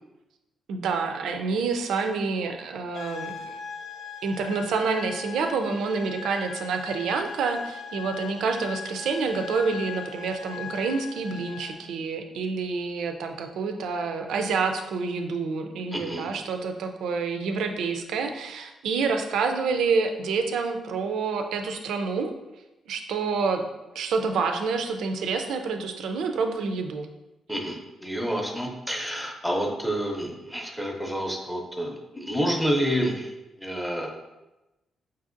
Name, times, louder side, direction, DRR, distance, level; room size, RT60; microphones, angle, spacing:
voice 1, 0.7-3.6 4.2-22.3 22.9-23.6 23.9-27.1, right 4 dB, 85° right, 5 dB, 0.4 m, -28 dB
sound 1, 2.9-11.9, left 7 dB, 65° left, 0.4 m, -39 dB
voice 2, 15.9-16.3 27.5-33.3 33.6-34.1, equal, ahead, 1 dB, 0.6 m, -29 dB
5.4 x 2.6 x 2.5 m, 0.99 s
cardioid pair, 130°, 0 cm